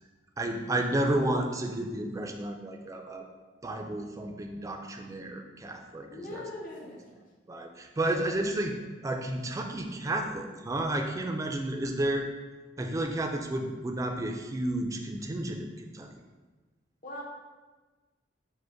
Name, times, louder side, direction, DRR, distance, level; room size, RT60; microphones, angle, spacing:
voice 1, 0.4-3.3 3.6-6.4 7.5-8.8 9.0-12.3 12.8-16.1, right 1 dB, 20° right, 3 dB, 0.3 m, -31 dB
voice 2, 6.1-7.2 17.0-17.2, left 1 dB, 50° left, -3 dB, 0.7 m, -41 dB
4.9 x 2.1 x 4.6 m, 1.3 s
head